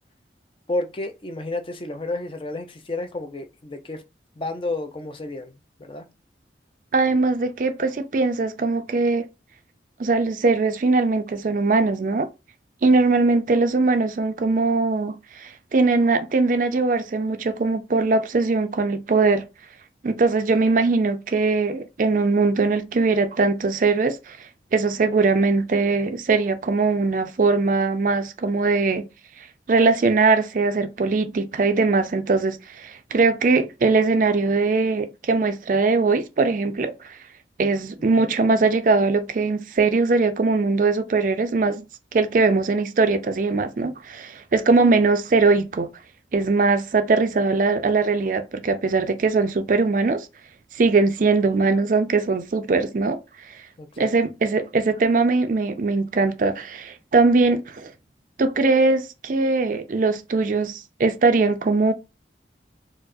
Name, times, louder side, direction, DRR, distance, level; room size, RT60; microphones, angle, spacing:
voice 1, 0.7-4.0 4.4-6.1 38.0-38.1 53.8-54.1, left 2 dB, 30° left, 0.5 m, -31 dB
voice 2, 6.9-9.3 10.0-12.3 12.8-19.5 20.0-29.0 29.7-37.2 37.6-41.8 42.1-45.9 46.3-50.3 50.7-53.2 54.0-57.9 58.4-61.9, right 3 dB, 45° right, 0.4 m, -21 dB
4.5 x 2.0 x 2.5 m
head